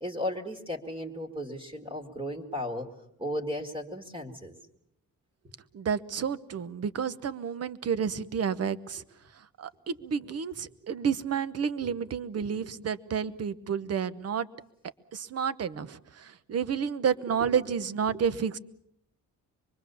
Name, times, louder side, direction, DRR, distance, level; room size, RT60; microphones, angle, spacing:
voice 1, 0.0-2.9 3.2-4.6 11.8-11.9 12.3-12.5 17.5-17.6 18.1-18.2, left 1 dB, 15° right, 4 dB, 2.3 m, -35 dB
voice 2, 5.7-9.0 9.6-14.5 15.1-18.6, right 7 dB, 45° right, 15 dB, 1.0 m, -30 dB
25.0 x 23.5 x 7.0 m, 0.72 s
wide cardioid pair, 155°, 35 cm